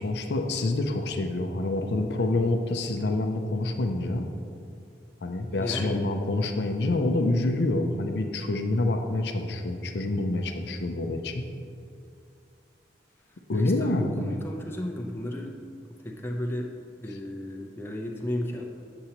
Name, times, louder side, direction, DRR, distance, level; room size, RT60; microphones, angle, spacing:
voice 1, 0.0-4.3 5.2-11.4 13.5-14.3 17.1-17.2, left 2 dB, 65° left, 4 dB, 0.5 m, -27 dB
voice 2, 5.6-6.0 13.5-15.5 16.0-16.7 17.0-18.6, left 1 dB, 15° left, -1 dB, 0.6 m, -33 dB
7.8 x 7.0 x 2.9 m, 2.4 s
head